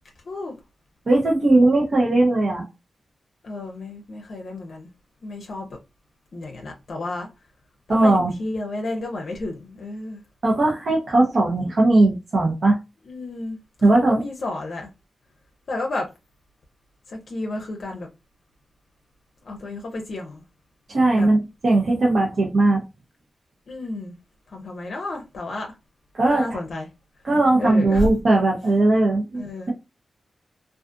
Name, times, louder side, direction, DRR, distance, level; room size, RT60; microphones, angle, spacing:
voice 1, 0.2-0.5 3.4-4.9 5.2-5.8 6.3-7.3 8.0-10.2 13.1-13.6 13.9-14.9 15.7-16.1 17.1-18.1 19.4-20.4 21.1-21.3 23.7-24.1 24.5-25.7 26.3-26.9 27.6-28.1 29.3-29.7, left 2 dB, 65° left, 0.5 m, -31 dB
voice 2, 1.1-2.7 7.9-8.3 10.4-12.8 13.8-14.2 20.9-22.8 26.1-26.4 27.2-29.4, right 2 dB, 60° right, 0.7 m, -18 dB
2.4 x 2.4 x 2.5 m
cardioid pair, 55°, 0 cm